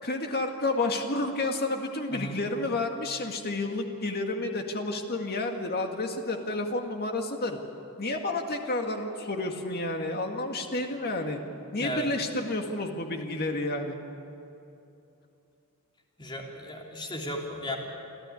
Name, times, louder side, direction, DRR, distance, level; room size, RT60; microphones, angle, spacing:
voice 1, 0.0-7.6 8.0-11.4 11.7-14.0, left 2 dB, 45° left, 4 dB, 2.0 m, -30 dB
voice 2, 2.1-2.4 11.8-12.1 16.2-17.8, equal, 20° left, 0 dB, 3.2 m, -35 dB
27.5 x 13.0 x 10.0 m, 2.8 s
head